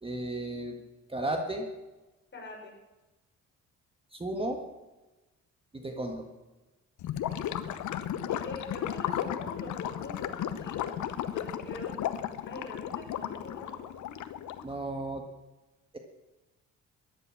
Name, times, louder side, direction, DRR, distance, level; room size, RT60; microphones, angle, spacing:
voice 1, 0.0-0.8 1.1-1.7 4.1-4.6 5.8-6.2 14.6-15.2, right 1 dB, 20° right, 3 dB, 1.8 m, -33 dB
voice 2, 2.3-2.8 5.8-6.0 8.3-11.0 11.3-12.0 12.5-13.8, left 2 dB, 40° left, 0 dB, 5.2 m, -43 dB
Gurgling / Liquid, 7.0-14.7, left 10 dB, 75° left, 0.9 m, -34 dB
13.5 x 11.0 x 6.4 m, 1.1 s
cardioid pair, 90°, 30 cm